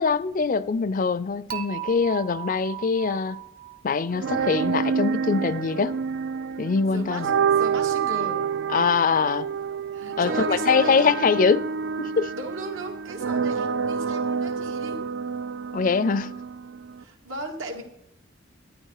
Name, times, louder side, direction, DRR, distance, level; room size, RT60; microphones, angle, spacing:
voice 1, 0.0-3.4 3.8-5.9 6.6-7.3 8.7-9.5 10.2-11.7 12.0-12.3 15.7-16.3, left 5 dB, 45° left, 0.5 m, -23 dB
Dishes pots and pans / Chink clink, 1.5-4.6, right 12 dB, 50° right, 0.9 m, -38 dB
sound 1, 4.1-17.0, right 6 dB, 65° right, 0.4 m, -28 dB
voice 2, 6.9-8.4 9.9-11.2 12.3-15.0 17.0-17.8, right 2 dB, 85° right, 2.3 m, -36 dB
12.0 x 9.6 x 4.8 m
head